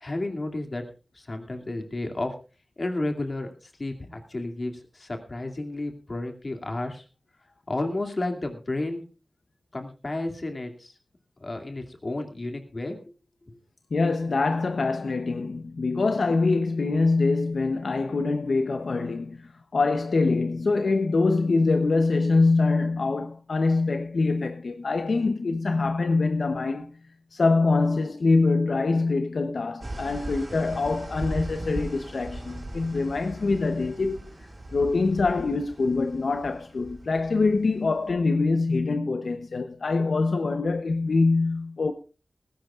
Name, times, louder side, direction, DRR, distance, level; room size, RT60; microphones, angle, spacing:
voice 1, 0.0-0.8 1.1-2.3 2.8-7.0 7.7-9.1 9.7-10.9 11.4-13.0 13.5-13.6, left 2 dB, 45° left, 2.5 m, -32 dB
voice 2, 13.9-26.9 27.3-34.3 34.7-41.9, left 3 dB, 80° left, 0.8 m, -24 dB
sound 1, 29.8-38.1, right 1 dB, 45° right, 4.9 m, -39 dB
19.0 x 16.0 x 2.5 m
wide cardioid pair, 90°, 0 cm